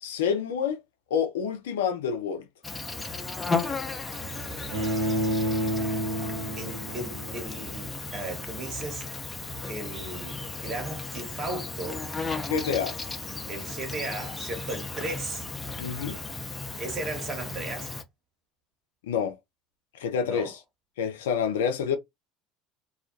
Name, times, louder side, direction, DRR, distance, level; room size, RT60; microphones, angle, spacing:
voice 1, 0.0-0.8 1.1-2.5 12.5-13.0 15.8-16.2 19.1-19.4 20.0-20.6 21.0-22.0, left 7 dB, 80° left, 0.4 m, -28 dB
Insect, 2.6-18.0, left 3 dB, 20° left, 0.6 m, -35 dB
voice 2, 4.1-5.2 6.6-9.1 9.7-12.0 13.5-15.5 16.8-17.9 20.2-20.5, right 2 dB, 40° right, 1.3 m, -36 dB
Bowed string instrument, 4.7-7.8, right 1 dB, 75° right, 0.6 m, -29 dB
2.3 x 2.2 x 2.5 m
hypercardioid pair, 75°, 0 cm